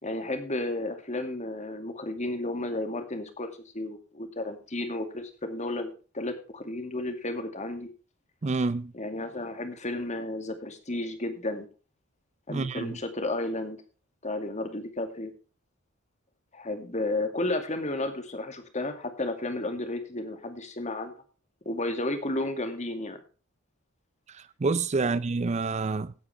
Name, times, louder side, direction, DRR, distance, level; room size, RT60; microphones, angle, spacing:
voice 1, 0.0-7.9 8.9-11.7 12.5-13.8 14.2-15.3 16.5-21.1 21.7-23.2 25.0-25.1, left 2 dB, 35° left, 2.3 m, -33 dB
voice 2, 8.4-8.9 12.5-13.0 24.3-26.1, right 3 dB, 30° right, 0.5 m, -28 dB
16.5 x 8.8 x 3.4 m
head